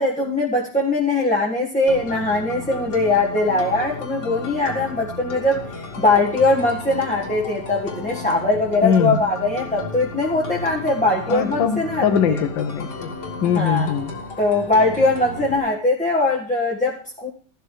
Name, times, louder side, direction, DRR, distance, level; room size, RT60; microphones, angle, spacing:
voice 1, 0.0-12.0 13.5-13.9 14.4-17.3, left 2 dB, 5° left, -4 dB, 1.4 m, -21 dB
sound 1, 1.9-15.6, left 3 dB, 65° left, 2.1 m, -34 dB
voice 2, 8.8-9.2 11.3-13.1 13.4-14.1, left 7 dB, 80° left, 10 dB, 1.7 m, -21 dB
13.5 x 11.5 x 3.2 m, 0.41 s
omnidirectional pair, 2.0 m